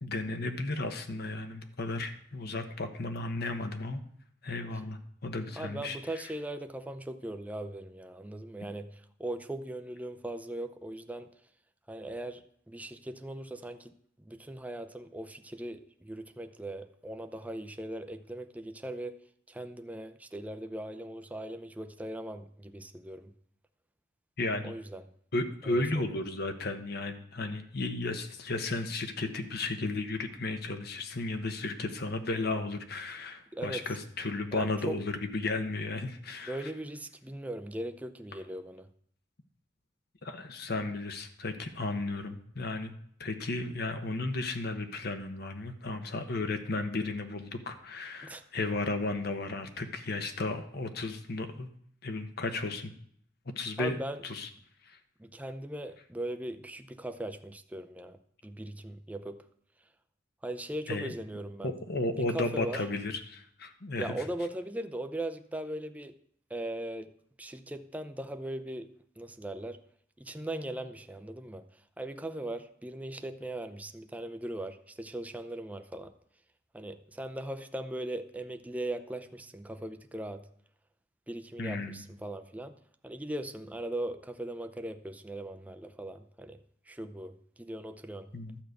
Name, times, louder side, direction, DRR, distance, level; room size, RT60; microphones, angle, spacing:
voice 1, 0.0-4.0 4.4-6.0 24.4-24.7 25.3-36.7 40.2-42.9 43.2-51.7 52.0-52.9 53.6-54.0 54.2-54.5 54.9-55.0 60.9-61.1 61.6-64.1 81.6-82.0 88.3-88.6, left 2 dB, 55° left, 1.1 m, -34 dB
voice 2, 5.6-11.3 11.9-19.2 19.5-23.3 24.6-25.0 25.6-26.1 33.5-33.8 34.5-35.0 36.4-38.9 48.2-48.4 53.8-54.2 55.2-59.4 60.4-61.7 62.2-62.8 64.0-66.2 66.5-67.1 67.4-69.8 70.2-71.7 72.0-76.1 76.7-80.5 81.3-82.7 83.0-86.6 86.9-88.3, right 1 dB, 10° right, 0.5 m, -39 dB
12.0 x 5.1 x 8.1 m
head